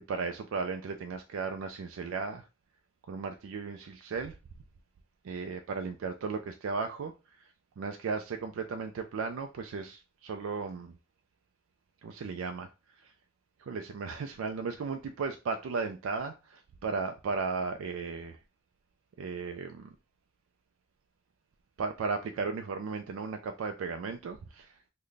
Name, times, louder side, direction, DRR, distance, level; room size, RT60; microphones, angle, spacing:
voice 1, 0.1-2.5 3.1-4.4 5.2-7.5 7.8-11.0 12.0-13.1 13.6-18.4 19.2-19.9 21.8-24.8, right 4 dB, 90° right, 0.3 m, -35 dB
3.2 x 2.1 x 3.8 m
head